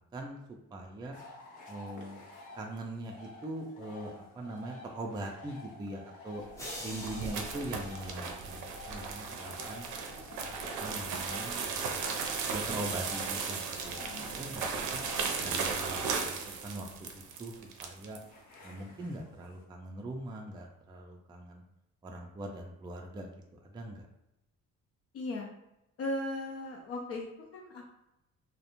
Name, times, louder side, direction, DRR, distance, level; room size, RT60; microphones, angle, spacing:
voice 1, 0.1-1.2 1.7-2.2 2.5-6.4 6.8-9.9 10.4-12.0 12.5-14.7 14.9-15.0 15.4-16.4 16.6-18.2 18.6-21.6 22.0-23.3 23.6-24.1, right 1 dB, 15° right, 1 dB, 0.3 m, -42 dB
sound 1, 1.1-19.6, left 2 dB, 85° left, 0.7 m, -51 dB
sound 2, 6.5-18.2, right 5 dB, 80° right, 0.5 m, -36 dB
sound 3, 6.6-8.9, equal, 10° left, 0.7 m, -45 dB
voice 2, 14.0-14.3 25.1-25.5 26.0-27.3 27.5-27.9, left 2 dB, 50° left, -1 dB, 0.4 m, -37 dB
2.4 x 2.1 x 2.9 m, 0.88 s
cardioid pair, 90°, 30 cm